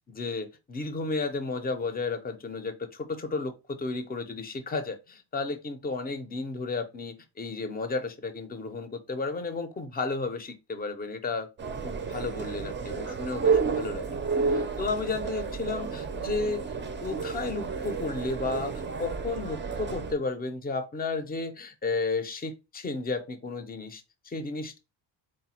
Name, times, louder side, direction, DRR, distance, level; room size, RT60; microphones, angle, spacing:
voice 1, 0.2-11.5 11.8-16.6 17.0-24.8, left 3 dB, 20° left, 0.5 m, -33 dB
sound 1, 11.6-20.1, right 5 dB, 25° right, 0.5 m, -31 dB
4.1 x 2.2 x 4.2 m
cardioid pair, 120°, 44 cm